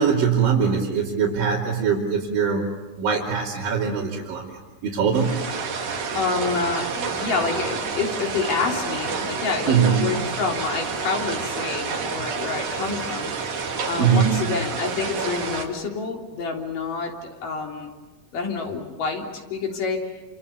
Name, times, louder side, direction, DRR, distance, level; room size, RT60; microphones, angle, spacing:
voice 1, 0.0-4.6 4.8-5.4 9.3-9.4 9.7-10.1 14.0-14.4, right 6 dB, 90° right, -5 dB, 4.6 m, -22 dB
sound 1, 5.1-15.7, right 5 dB, 65° right, 3.8 m, -29 dB
voice 2, 6.1-13.3 13.8-17.9 18.3-20.1, left 4 dB, 75° left, 1 dB, 5.0 m, -28 dB
28.5 x 28.0 x 6.9 m, 1.2 s
omnidirectional pair, 3.8 m